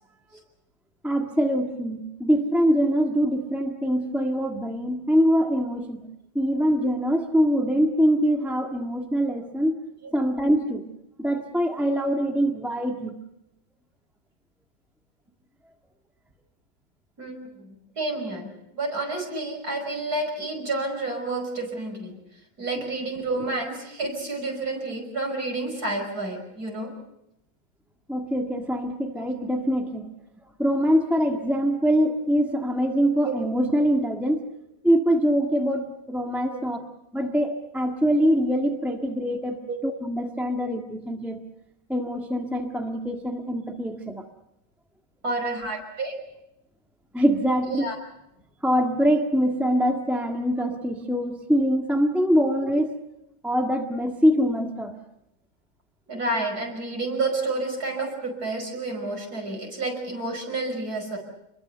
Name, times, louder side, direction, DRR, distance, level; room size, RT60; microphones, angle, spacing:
voice 1, 1.0-6.0 6.3-9.7 10.1-10.8 11.2-13.1 28.1-30.1 30.6-34.4 34.8-36.8 37.1-39.6 39.8-41.4 41.9-44.2 47.1-47.9 48.6-52.9 53.4-54.9, equal, ahead, 3 dB, 1.4 m, -23 dB
voice 2, 17.2-18.5 18.8-22.1 22.6-26.9 29.2-29.3 33.2-33.3 36.5-36.7 39.7-39.8 45.2-46.2 47.6-47.9 56.1-61.2, right 2 dB, 45° right, 3 dB, 6.1 m, -30 dB
27.5 x 22.0 x 6.8 m, 0.88 s
omnidirectional pair, 2.3 m